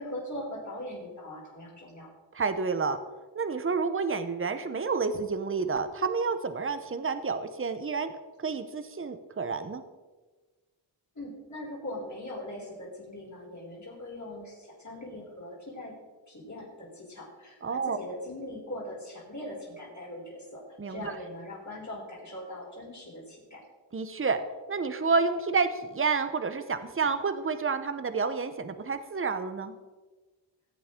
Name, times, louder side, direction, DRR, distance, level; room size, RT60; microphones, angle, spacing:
voice 1, 0.0-2.1 11.2-15.9 16.3-20.6 20.9-23.6, left 1 dB, 35° left, -4 dB, 3.7 m, -41 dB
voice 2, 2.3-3.0 3.3-8.1 8.4-9.8 17.6-18.0 20.8-21.1 23.9-24.4 24.7-29.8, right 4 dB, 25° right, 10 dB, 0.8 m, -29 dB
16.0 x 8.5 x 3.7 m, 1.3 s
wide cardioid pair, 70°, 47 cm